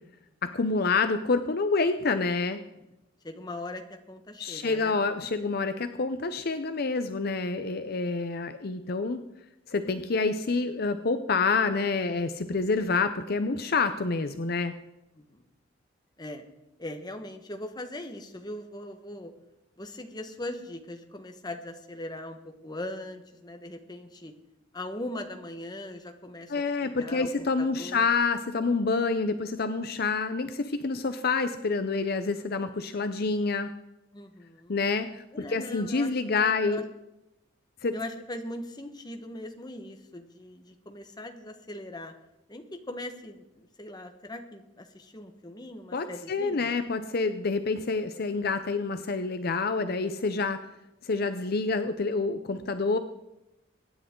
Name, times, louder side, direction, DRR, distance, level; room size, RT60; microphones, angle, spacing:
voice 1, 0.4-2.6 4.4-9.2 9.7-14.7 26.5-33.7 34.7-35.2 35.5-36.8 37.8-37.9 45.9-50.6 51.0-53.0, left 4 dB, 50° left, 10 dB, 0.6 m, -27 dB
voice 2, 3.2-4.9 15.2-15.5 16.2-16.4 16.8-19.3 19.8-24.3 24.7-28.1 34.1-34.8 35.3-36.8 37.9-42.1 42.5-46.7, left 1 dB, 20° left, 5 dB, 1.4 m, -40 dB
24.0 x 10.0 x 3.8 m, 0.93 s
head